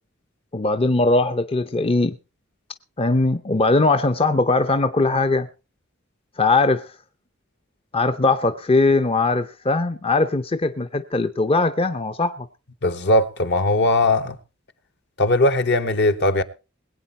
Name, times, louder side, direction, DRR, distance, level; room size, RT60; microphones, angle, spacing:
voice 1, 0.5-2.2 3.0-5.5 6.4-7.0 7.9-12.5, left 3 dB, 30° left, 0.6 m, -20 dB
voice 2, 12.8-14.4 15.2-16.4, left 2 dB, 60° left, 1.1 m, -19 dB
21.0 x 8.7 x 4.2 m
head